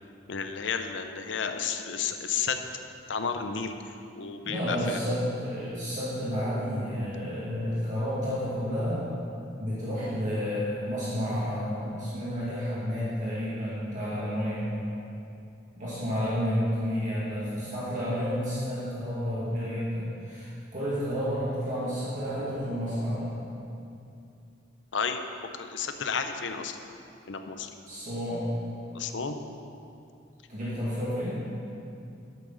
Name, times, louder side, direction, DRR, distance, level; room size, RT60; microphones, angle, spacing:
voice 1, 0.3-2.6 3.1-3.8 4.2-5.0 24.9-25.2 25.5-26.8 27.3-27.7 28.9-29.4, left 6 dB, 80° left, 7 dB, 0.6 m, -32 dB
voice 2, 4.4-9.0 9.6-15.0 15.8-23.3 27.9-28.5 30.5-31.4, equal, 45° right, -10 dB, 2.2 m, -30 dB
10.5 x 8.2 x 4.0 m, 2.7 s
head